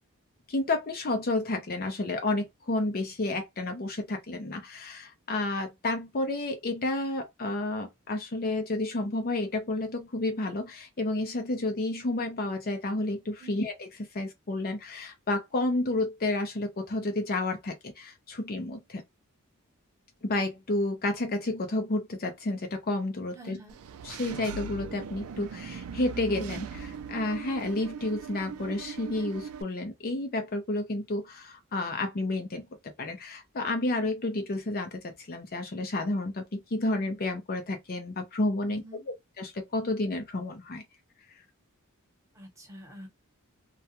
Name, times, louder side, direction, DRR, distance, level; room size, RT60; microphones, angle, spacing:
voice 1, 0.5-13.7 14.1-19.0 20.2-23.6 24.0-38.8 39.4-40.8, left 2 dB, 45° left, 0.6 m, -31 dB
voice 2, 23.3-23.8 38.6-39.1 42.3-43.1, equal, 15° right, 1.1 m, -47 dB
Engine / Mechanisms, 23.7-29.6, right 6 dB, 70° right, 0.4 m, -40 dB
2.4 x 2.2 x 2.8 m
head